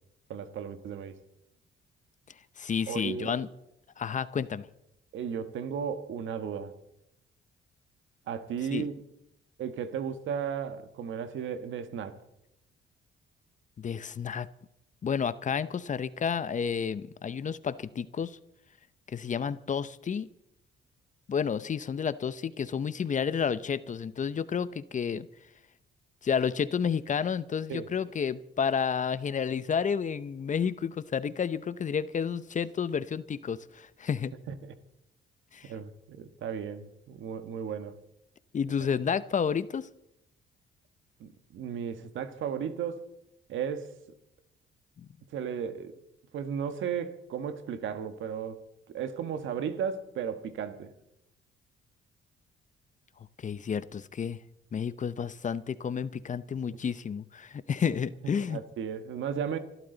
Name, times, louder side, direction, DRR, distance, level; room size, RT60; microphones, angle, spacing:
voice 1, 0.3-1.2 2.9-3.4 5.1-6.7 8.3-8.9 9.6-12.2 27.7-27.9 34.5-34.7 35.6-37.9 41.2-43.1 43.5-43.9 45.3-45.9 46.3-48.6 48.9-50.9 58.2-59.6, right 7 dB, 75° right, 1.5 m, -35 dB
voice 2, 2.6-3.5 4.0-4.7 8.7-8.9 13.8-14.5 15.0-18.4 19.1-20.3 21.3-25.3 26.2-34.3 35.5-35.7 38.5-39.9 45.0-45.1 53.4-54.4 54.7-58.6, left 7 dB, 40° left, 0.7 m, -31 dB
26.5 x 12.5 x 4.0 m
cardioid pair, 90°, 20 cm